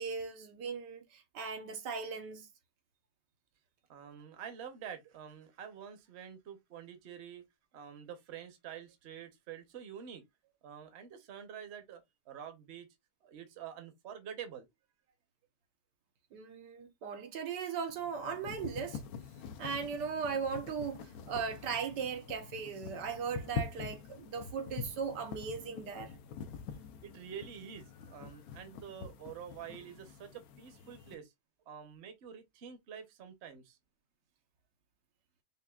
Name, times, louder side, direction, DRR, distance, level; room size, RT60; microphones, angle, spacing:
voice 1, 0.0-2.5 16.3-19.0 19.6-26.1, right 6 dB, 80° right, 1.5 m, -38 dB
voice 2, 3.9-7.4 7.7-10.2 10.6-12.9 13.2-14.7 27.0-31.3 31.7-33.8, right 8 dB, 45° right, 1.0 m, -47 dB
sound 1, 17.9-31.2, left 6 dB, 70° left, 1.0 m, -45 dB
5.6 x 2.3 x 2.3 m
omnidirectional pair, 1.8 m